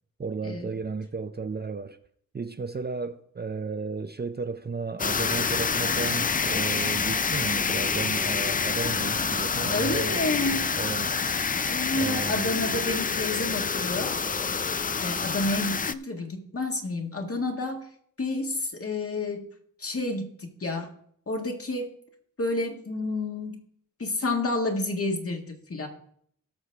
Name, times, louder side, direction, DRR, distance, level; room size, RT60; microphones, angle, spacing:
voice 1, 0.2-2.0 2.3-11.2 12.0-12.5, right 4 dB, 30° right, 0.5 m, -34 dB
sound 1, 5.0-15.9, left 5 dB, 25° left, 0.4 m, -27 dB
voice 2, 9.7-10.7 11.6-14.2 15.0-17.9 18.2-19.5 19.8-20.9 21.3-21.9 22.4-23.6 24.0-25.9, left 2 dB, 45° left, 1.8 m, -30 dB
17.5 x 6.4 x 3.4 m
wide cardioid pair, 95°, 33 cm